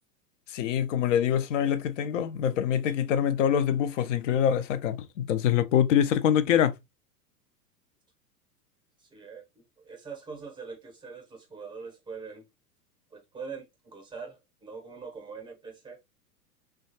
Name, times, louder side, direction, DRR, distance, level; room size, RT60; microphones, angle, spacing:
voice 1, 0.5-6.7, left 9 dB, 50° left, 0.5 m, -25 dB
voice 2, 9.0-12.5 13.1-16.0, right 5 dB, 10° right, 0.7 m, -43 dB
3.1 x 2.3 x 2.6 m
figure-of-eight pair, 95°, 48 cm